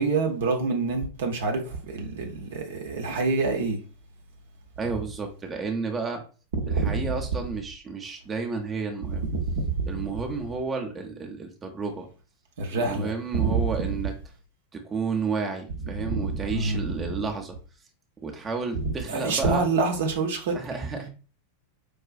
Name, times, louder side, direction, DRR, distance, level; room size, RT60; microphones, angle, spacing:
voice 1, 0.0-1.6 1.9-3.8 6.5-7.1 12.6-13.8 16.1-16.2 16.5-16.9 18.8-20.6, right 4 dB, 60° right, 0.6 m, -26 dB
voice 2, 4.8-6.2 6.7-9.3 9.9-12.1 12.7-14.1 14.7-17.6 18.2-19.7 20.5-21.1, right 4 dB, 20° right, 0.6 m, -31 dB
4.6 x 2.3 x 2.3 m
figure-of-eight pair, 90°, 0 cm